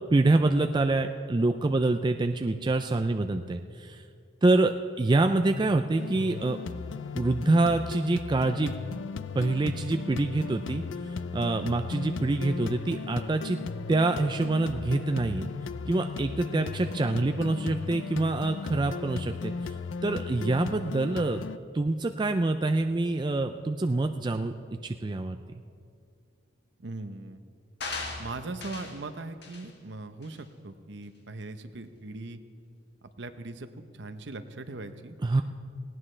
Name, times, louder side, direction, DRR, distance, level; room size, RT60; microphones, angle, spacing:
voice 1, 0.1-4.0 4.4-6.6 7.1-8.7 9.3-13.6 13.9-15.5 15.9-19.8 20.0-21.4 21.7-24.5 24.8-25.4 35.2-35.4, right 2 dB, 25° right, 6 dB, 0.4 m, -26 dB
sound 1, 6.0-21.6, left 4 dB, 75° left, 0.4 m, -36 dB
voice 2, 26.8-27.4 28.2-32.4 33.2-33.7 33.9-35.2, right 2 dB, 65° right, 9 dB, 0.8 m, -40 dB
sound 2, 27.8-29.0 29.4-29.7 30.2-30.4, left 3 dB, 60° left, 1.7 m, -38 dB
18.5 x 17.5 x 3.3 m, 2.3 s
head